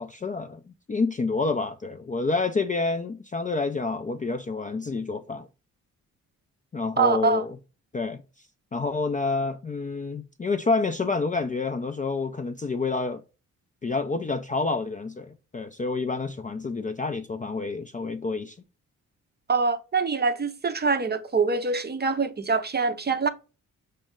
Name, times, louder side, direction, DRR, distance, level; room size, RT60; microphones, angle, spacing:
voice 1, 0.0-5.5 6.7-7.5 7.9-8.2 8.7-13.2 13.8-18.6, left 3 dB, 20° left, 0.4 m, -28 dB
voice 2, 7.0-7.4 19.5-23.3, right 4 dB, 25° right, 0.6 m, -24 dB
6.0 x 2.1 x 3.6 m
hypercardioid pair, 40°, 40 cm